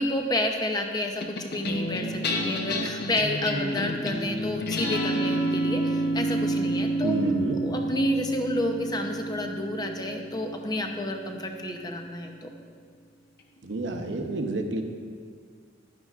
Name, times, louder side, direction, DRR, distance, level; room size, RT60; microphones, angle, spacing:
voice 1, 0.0-7.1 7.6-12.5, left 1 dB, 20° left, 3 dB, 0.7 m, -30 dB
sound 1, 1.2-11.8, right 1 dB, 55° left, 0.8 m, -29 dB
voice 2, 7.0-7.6 13.6-14.8, right 2 dB, 70° right, 4 dB, 0.8 m, -29 dB
11.5 x 9.5 x 2.4 m, 2.1 s
head